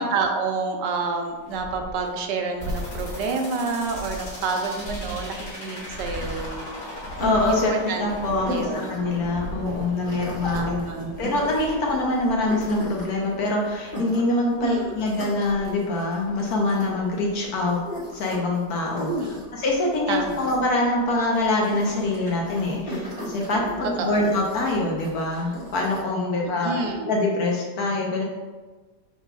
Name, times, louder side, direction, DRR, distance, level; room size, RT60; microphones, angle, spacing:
voice 1, 0.0-6.7 7.5-8.1 8.5-8.9 9.6-9.8 10.5-11.2 14.6-15.0 19.1-19.4 20.1-20.5 23.6-24.2 26.4-27.1, right 4 dB, 80° right, 3 dB, 1.2 m, -28 dB
sound 1, 1.2-2.1 2.4-3.3 3.6-5.5 5.8-7.7 8.0-13.0, right 1 dB, 55° right, 0.7 m, -38 dB
sound 2, 2.6-12.6, left 1 dB, 90° left, 2.3 m, -39 dB
sound 3, 6.0-26.0, equal, 30° left, 1.6 m, -39 dB
voice 2, 7.2-17.8 18.1-19.1 19.6-28.2, left 2 dB, 65° left, -1 dB, 1.2 m, -24 dB
5.5 x 4.1 x 2.3 m, 1.3 s
omnidirectional pair, 1.9 m